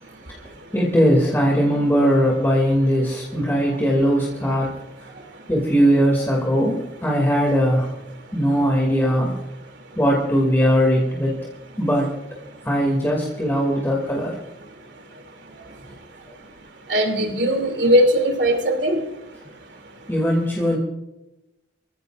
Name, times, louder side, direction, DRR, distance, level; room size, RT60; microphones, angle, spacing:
voice 1, 0.7-4.7 5.5-7.9 8.3-9.4 10.0-11.4 11.8-12.1 12.6-14.4 20.1-20.8, equal, 15° left, -2 dB, 2.6 m, -19 dB
voice 2, 16.9-19.0, equal, 80° right, 3 dB, 3.0 m, -19 dB
25.5 x 15.5 x 2.6 m, 0.96 s
head